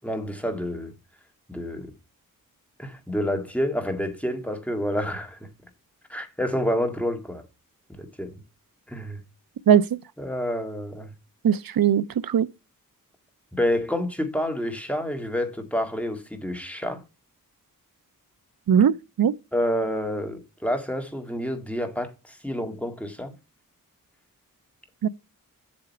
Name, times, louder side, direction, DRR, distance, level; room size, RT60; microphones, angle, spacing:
voice 1, 0.0-0.9 1.5-1.9 2.8-5.4 6.1-7.4 7.9-8.3 8.9-9.2 10.2-11.1 13.5-17.0 19.5-23.3, equal, 5° left, 1.9 m, -28 dB
voice 2, 11.4-12.5 18.7-19.3 25.0-25.1, right 8 dB, 85° right, 0.5 m, -19 dB
7.8 x 6.4 x 4.2 m
wide cardioid pair, 75°, 34 cm